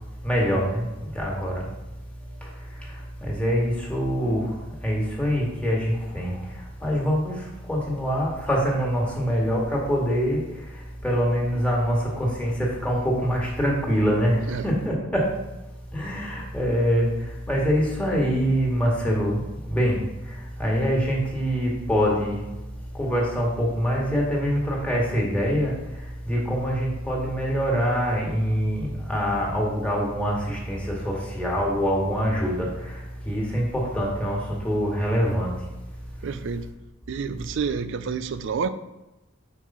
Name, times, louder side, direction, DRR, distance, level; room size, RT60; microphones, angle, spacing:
voice 1, 0.2-0.8 1.2-1.6 3.2-4.5 4.8-6.3 6.8-7.3 7.7-10.4 11.0-15.3 15.9-17.1 17.5-19.4 19.7-20.0 20.6-22.4 23.0-25.7 26.3-32.7 33.3-34.4 34.6-35.5, equal, 5° left, -3 dB, 1.7 m, -24 dB
voice 2, 36.2-36.6 37.1-38.7, right 5 dB, 65° right, 11 dB, 0.4 m, -29 dB
5.5 x 4.8 x 5.9 m, 1.0 s
head